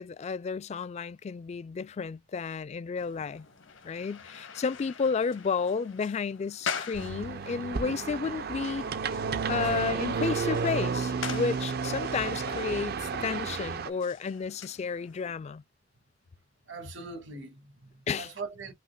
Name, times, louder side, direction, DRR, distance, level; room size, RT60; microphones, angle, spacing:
voice 1, 0.0-3.4 3.8-8.9 9.5-15.6 18.1-18.3, left 5 dB, 35° left, 0.3 m, -32 dB
sound 1, 3.0-15.4, left 6 dB, 85° left, 1.3 m, -43 dB
sound 2, 6.9-13.9, right 5 dB, 50° right, 0.5 m, -32 dB
voice 2, 16.7-18.7, right 4 dB, 75° right, 1.8 m, -41 dB
5.5 x 2.8 x 2.3 m
head